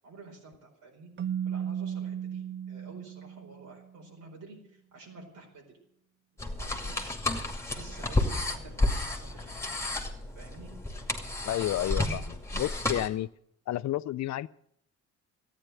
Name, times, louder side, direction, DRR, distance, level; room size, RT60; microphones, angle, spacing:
voice 1, 0.0-5.6 6.3-7.2 7.7-10.0 10.3-10.7, right 3 dB, 75° right, -1 dB, 4.6 m, -50 dB
Keyboard (musical), 1.2-3.9, right 9 dB, 40° right, 0.5 m, -35 dB
sound 1, 6.4-13.1, left 2 dB, 10° left, 2.3 m, -31 dB
voice 2, 11.4-13.3 13.7-14.5, left 14 dB, 65° left, 17 dB, 0.6 m, -31 dB
13.5 x 9.6 x 9.1 m, 0.69 s
cardioid pair, 90°, 30 cm